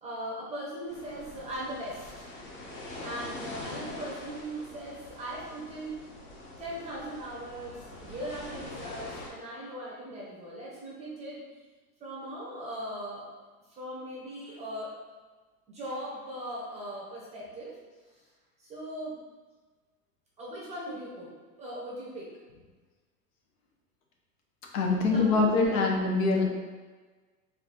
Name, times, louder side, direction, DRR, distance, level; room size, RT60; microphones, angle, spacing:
voice 1, 0.0-2.3 3.0-5.9 6.6-11.4 12.0-13.4 13.7-14.9 15.7-17.8 18.1-18.3 18.6-19.2 20.4-21.3 21.6-22.3 25.1-26.0 26.3-26.5, right 1 dB, 15° right, -5 dB, 0.8 m, -39 dB
sound 1, 0.9-9.3, left 2 dB, 25° left, 0.7 m, -44 dB
voice 2, 24.7-26.5, left 3 dB, 55° left, 0 dB, 0.9 m, -24 dB
4.0 x 2.7 x 4.4 m, 1.3 s
supercardioid pair, 145°, 48 cm